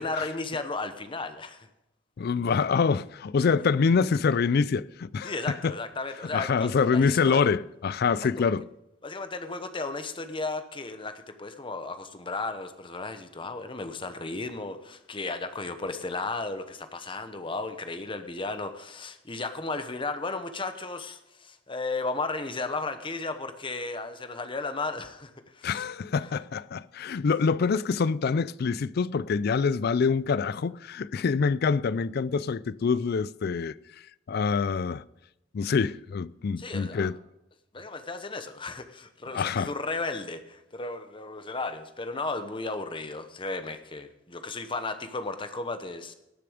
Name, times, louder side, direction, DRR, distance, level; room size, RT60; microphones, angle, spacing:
voice 1, 0.0-1.7 5.2-7.5 8.2-8.3 9.0-25.9 36.6-37.1 37.7-46.1, left 3 dB, 25° left, 1.0 m, -34 dB
voice 2, 2.2-5.8 6.3-8.7 25.6-33.8 34.3-35.0 35.5-37.2 39.3-39.7, left 5 dB, 55° left, 0.4 m, -25 dB
19.0 x 6.9 x 5.0 m
head